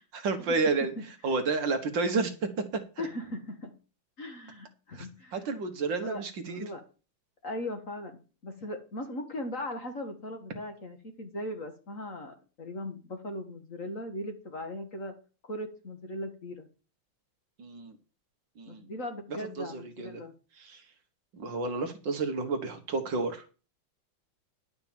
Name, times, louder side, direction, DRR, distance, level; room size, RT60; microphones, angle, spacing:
voice 1, 0.1-3.1 4.9-6.6 17.6-18.0 18.6-18.9 19.3-20.2 20.6-20.9 21.3-23.5, right 4 dB, 60° right, 8 dB, 1.9 m, -31 dB
voice 2, 3.0-3.7 4.2-5.4 6.0-6.2 6.5-6.8 7.4-15.1 15.4-16.7 18.7-20.3, left 1 dB, 40° left, 5 dB, 1.9 m, -38 dB
11.0 x 5.7 x 7.3 m, 0.34 s
omnidirectional pair, 2.3 m